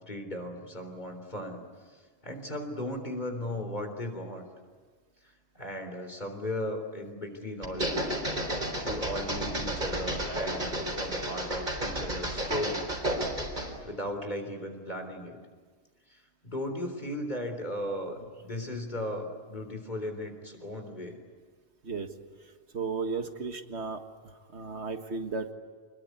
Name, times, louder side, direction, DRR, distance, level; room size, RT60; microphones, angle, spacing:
voice 1, 0.1-1.6 1.9-4.4 5.5-8.1 8.8-12.8 13.2-15.4 16.1-21.2, left 1 dB, 40° left, 5 dB, 3.8 m, -37 dB
sound 1, 7.6-13.8, right 1 dB, 45° right, 4.2 m, -32 dB
voice 2, 22.7-24.0 24.5-25.5, right 4 dB, 80° right, 6 dB, 1.9 m, -34 dB
26.5 x 21.0 x 9.6 m, 1.5 s
omnidirectional pair, 1.1 m